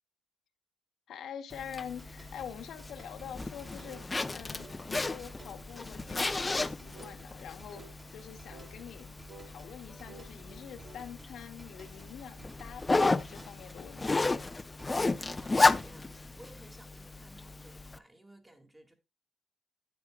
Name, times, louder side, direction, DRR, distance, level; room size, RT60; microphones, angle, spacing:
voice 1, 1.1-9.2 9.4-14.3, left 8 dB, 70° left, 1.0 m, -46 dB
Zipper (clothing), 1.5-18.0, left 3 dB, 20° left, 0.5 m, -33 dB
sound 1, 1.8-15.9, right 3 dB, 35° right, 3.0 m, -57 dB
sound 2, 3.8-4.1 4.6-4.9 5.4-5.6 6.2-6.4 6.9-7.2 7.7-8.0 8.5-8.7 9.3-11.1, right 3 dB, 55° right, 5.4 m, -53 dB
voice 2, 15.3-18.9, right 1 dB, 10° right, 1.8 m, -56 dB
9.7 x 9.3 x 2.2 m
cardioid pair, 90°, 0 cm